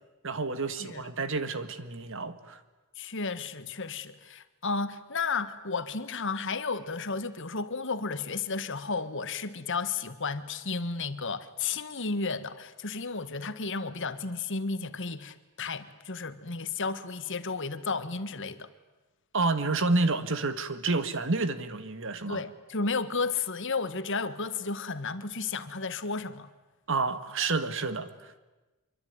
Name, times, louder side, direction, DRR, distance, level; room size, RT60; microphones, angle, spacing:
voice 1, 0.2-2.6 19.3-22.4 26.9-28.4, right 3 dB, 60° right, 11 dB, 1.8 m, -29 dB
voice 2, 3.0-18.7 22.3-26.5, left 4 dB, 55° left, 12 dB, 1.5 m, -33 dB
25.0 x 24.0 x 9.6 m, 1.1 s
head